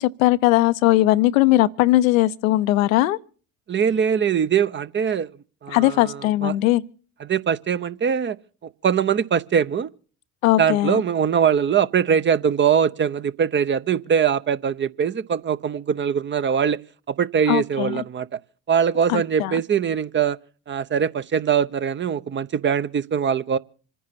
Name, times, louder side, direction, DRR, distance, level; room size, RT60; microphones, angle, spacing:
voice 1, 0.0-3.2 5.7-6.8 10.4-11.0 17.5-18.0 19.1-19.6, left 16 dB, 80° left, 0.7 m, -19 dB
voice 2, 3.7-5.3 5.6-6.5 7.2-8.4 8.8-9.9 10.6-16.8 17.1-18.4 18.7-20.4 20.7-23.6, right 7 dB, 30° right, 0.6 m, -22 dB
27.0 x 10.0 x 4.2 m
hypercardioid pair, 60°, 40 cm